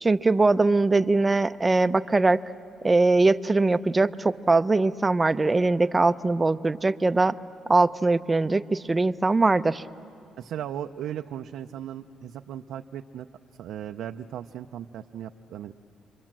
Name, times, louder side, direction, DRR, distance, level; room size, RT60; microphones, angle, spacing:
voice 1, 0.0-2.4 2.8-7.3 7.7-9.8, right 3 dB, 20° right, 13 dB, 0.6 m, -21 dB
voice 2, 10.4-13.3 13.6-15.7, right 10 dB, 80° right, 5 dB, 0.6 m, -37 dB
29.5 x 23.5 x 7.5 m, 2.4 s
cardioid pair, 90°, 0 cm